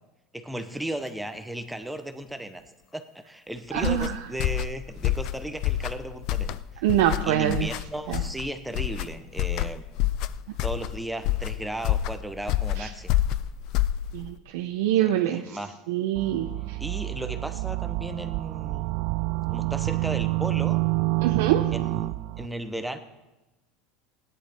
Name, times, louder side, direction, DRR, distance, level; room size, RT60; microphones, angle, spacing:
voice 1, 0.3-2.6 2.9-6.5 7.2-9.8 10.6-13.2 15.0-15.7 16.8-18.9 19.5-20.8 21.7-23.0, right 1 dB, 5° right, 8 dB, 0.8 m, -35 dB
sound 1, 3.7-14.4, left 13 dB, 50° left, 0.4 m, -28 dB
voice 2, 3.7-4.2 6.8-7.7 8.1-8.2 12.8-12.9 14.1-15.6 15.9-16.8 21.2-21.6, right 12 dB, 85° right, 4 dB, 0.7 m, -25 dB
sound 2, 16.1-22.5, right 22 dB, 65° right, 0.3 m, -28 dB
16.5 x 10.5 x 4.4 m, 1.0 s
supercardioid pair, 145°, 0 cm